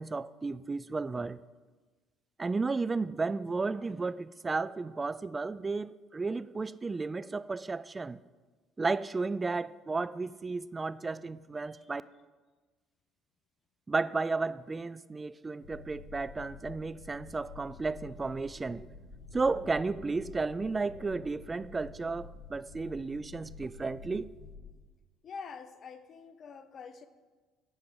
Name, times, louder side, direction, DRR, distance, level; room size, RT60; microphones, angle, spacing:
voice 1, 0.0-1.4 2.4-8.2 8.8-12.0 13.9-18.9 19.3-24.3, right 3 dB, 25° right, 0.3 m, -33 dB
sound 1, 15.6-24.7, left 4 dB, 70° left, 1.5 m, -49 dB
voice 2, 25.2-27.1, left 5 dB, 50° left, 0.6 m, -45 dB
9.2 x 5.0 x 6.2 m
supercardioid pair, 70°, 0 cm